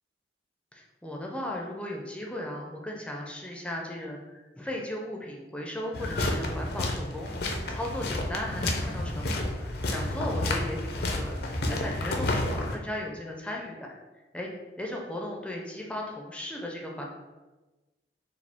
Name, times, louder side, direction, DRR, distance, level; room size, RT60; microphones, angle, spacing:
voice 1, 0.7-13.9 14.3-14.5 14.8-17.1, left 1 dB, 5° left, -1 dB, 0.4 m, -36 dB
sound 1, 5.9-12.8, left 1 dB, 60° left, 0.5 m, -30 dB
4.9 x 2.3 x 3.5 m, 1.2 s
head